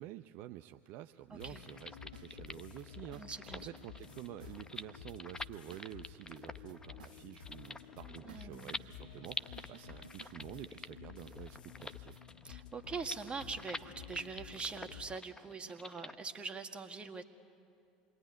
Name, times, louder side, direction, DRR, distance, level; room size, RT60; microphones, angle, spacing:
voice 1, 0.0-12.2, right 14 dB, 55° right, 9 dB, 0.6 m, -49 dB
sound 1, 1.3-15.2, left 10 dB, 80° left, 1.0 m, -52 dB
voice 2, 1.3-1.7 3.2-3.7 8.2-8.8 12.4-17.2, right 4 dB, 25° right, 6 dB, 1.8 m, -43 dB
sound 2, 1.4-16.2, left 3 dB, 15° left, 0.9 m, -48 dB
sound 3, 2.1-12.2, right 9 dB, 75° right, 0.9 m, -61 dB
27.5 x 21.5 x 9.9 m, 2.5 s
figure-of-eight pair, 75°, 5 cm